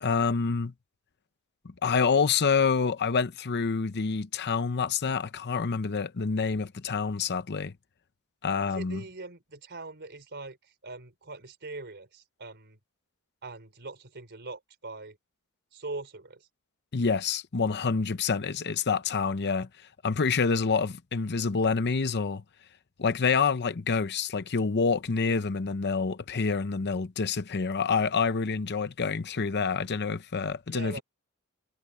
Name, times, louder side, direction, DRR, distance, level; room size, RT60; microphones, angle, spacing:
voice 1, 0.0-0.7 1.8-7.7 8.4-9.0 16.9-19.7 20.0-22.4 23.0-31.0, left 5 dB, 50° left, 0.7 m, -27 dB
voice 2, 8.6-12.8 13.4-15.2 15.7-16.5 30.7-31.0, right 3 dB, 50° right, 4.4 m, -42 dB
head